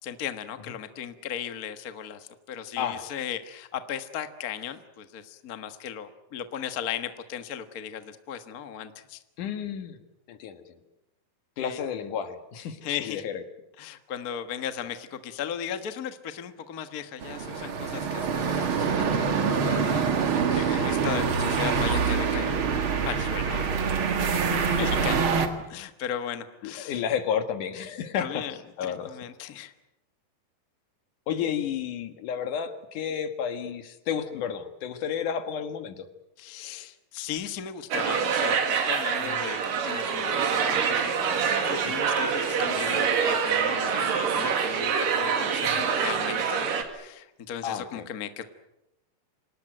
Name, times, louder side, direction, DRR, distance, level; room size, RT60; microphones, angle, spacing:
voice 1, 0.0-9.2 11.6-11.8 12.8-13.2 13.8-20.0 20.3-22.7 23.1-24.0 24.7-25.3 25.7-27.0 28.2-28.5 28.8-29.7 36.4-39.6 39.8-46.7 46.9-48.4, left 9 dB, 80° left, 9 dB, 0.8 m, -37 dB
voice 2, 2.8-3.1 9.4-10.0 10.3-10.8 11.6-13.4 20.5-20.8 24.6-25.3 25.7-25.9 26.6-28.4 28.8-29.2 31.3-36.1 39.2-39.4 45.6-45.8 47.6-48.1, left 8 dB, 65° left, 9 dB, 2.9 m, -32 dB
sound 1, 17.2-25.5, right 6 dB, 45° right, 2.1 m, -25 dB
sound 2, 37.9-46.8, right 6 dB, 70° right, 3.8 m, -26 dB
27.0 x 19.0 x 9.2 m, 0.92 s
omnidirectional pair, 4.2 m